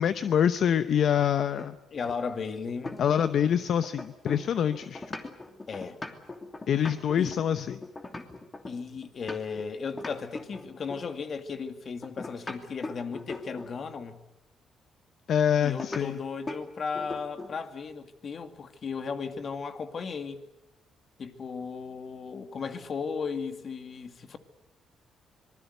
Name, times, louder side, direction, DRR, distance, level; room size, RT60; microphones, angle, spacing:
voice 1, 0.0-1.8 3.0-5.1 6.7-7.8 15.3-16.2, left 9 dB, 65° left, 0.8 m, -25 dB
sound 1, 1.6-3.5 3.8-9.6 10.0-11.1 12.0-13.8 15.8-16.1 16.5-16.6 16.9-17.6, left 2 dB, 25° left, 2.8 m, -40 dB
voice 2, 1.9-3.0 5.7-6.0 7.2-7.3 8.7-14.2 15.6-20.4 21.2-24.4, left 5 dB, 50° left, 2.3 m, -35 dB
25.0 x 20.5 x 8.2 m
cardioid pair, 90°, 0 cm